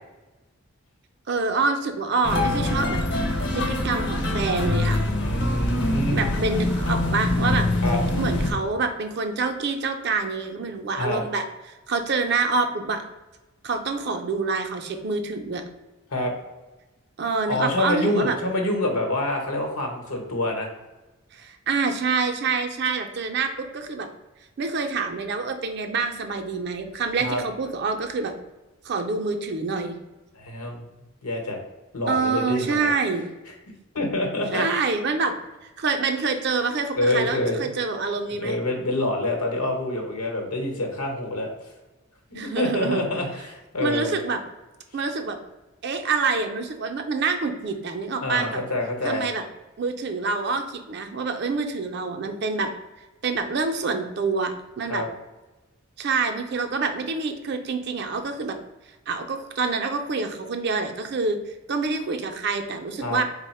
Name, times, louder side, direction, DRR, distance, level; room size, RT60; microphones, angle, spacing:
voice 1, 1.3-3.0 3.5-5.0 5.9-7.7 8.2-11.4 11.9-13.0 13.6-15.6 17.2-18.4 21.3-24.1 24.6-28.3 28.8-30.0 32.1-33.2 34.5-35.4 35.8-38.6 42.3-43.0 43.8-44.4 44.9-45.4 45.8-48.6 49.0-49.4 49.8-52.7 53.2-55.0 56.0-58.6 59.1-61.4 61.7-63.2, right 4 dB, 50° right, 5 dB, 0.4 m, -26 dB
sound 1, 2.2-8.5, left 2 dB, 50° left, 0.5 m, -24 dB
voice 2, 5.2-6.3 7.8-8.0 11.0-11.2 16.1-16.3 17.5-20.7 27.2-27.4 30.4-30.8 31.2-31.6 31.9-32.9 33.9-34.6 37.0-37.7 38.3-41.5 42.3-44.2 48.2-49.3 54.9-55.1 63.0-63.2, left 1 dB, 90° left, 2 dB, 0.9 m, -26 dB
4.0 x 2.1 x 4.1 m, 1.1 s
head